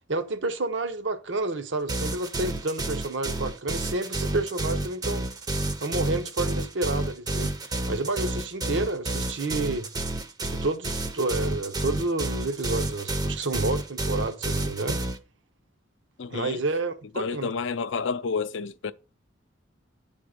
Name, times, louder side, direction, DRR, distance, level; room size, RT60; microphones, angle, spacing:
voice 1, 0.1-5.2 5.8-7.5 7.9-9.9 10.4-15.0 16.3-17.5, right 2 dB, 70° right, 0.8 m, -29 dB
sound 1, 1.9-15.2, right 2 dB, 20° right, 0.5 m, -30 dB
voice 2, 16.2-16.6 17.2-18.9, left 5 dB, 75° left, 0.5 m, -30 dB
9.4 x 3.7 x 5.1 m
head